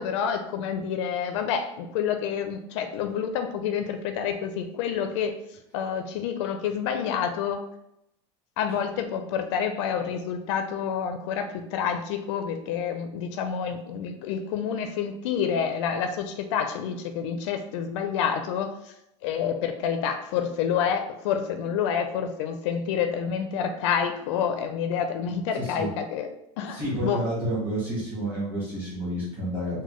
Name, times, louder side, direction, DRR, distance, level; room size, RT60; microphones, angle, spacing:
voice 1, 0.0-5.3 5.7-7.6 8.6-18.9 19.2-26.3 26.6-27.2, left 7 dB, 70° left, 7 dB, 0.4 m, -28 dB
voice 2, 25.6-25.9 26.7-29.8, right 1 dB, 10° right, -8 dB, 1.4 m, -30 dB
3.9 x 2.2 x 3.1 m, 0.82 s
supercardioid pair, 165°, 16 cm